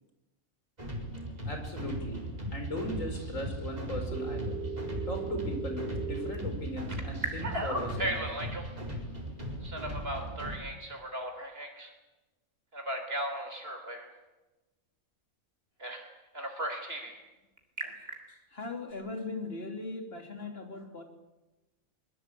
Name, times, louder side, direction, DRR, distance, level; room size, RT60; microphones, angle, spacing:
sound 1, 0.8-10.6, right 1 dB, 30° right, 4.8 m, -38 dB
voice 1, 1.4-2.2 2.5-4.6 5.1-8.2, left 1 dB, 65° left, 5 dB, 5.1 m, -38 dB
Telephone, 4.1-6.4 6.9-8.7 9.6-11.9 12.7-14.1 15.8-16.1 16.3-17.1 17.6-18.1, right 1 dB, 45° right, 3.7 m, -36 dB
voice 2, 17.8-21.0, left 3 dB, 45° left, 4 dB, 3.5 m, -40 dB
23.5 x 22.0 x 8.5 m, 1.1 s
omnidirectional pair, 1.5 m